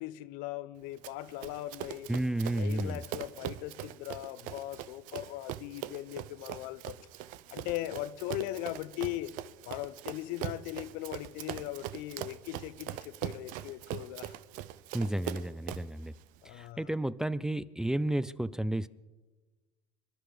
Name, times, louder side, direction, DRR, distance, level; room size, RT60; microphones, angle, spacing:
voice 1, 0.0-2.1 2.5-7.0 7.5-9.3 9.6-14.4 16.4-16.9, left 15 dB, 70° left, 0.8 m, -39 dB
Run, 1.0-16.0, right 13 dB, 65° right, 0.8 m, -42 dB
voice 2, 2.1-3.0 14.9-16.1 16.4-18.9, right 1 dB, 5° right, 0.4 m, -32 dB
26.0 x 11.0 x 5.0 m
supercardioid pair, 105°, 15 cm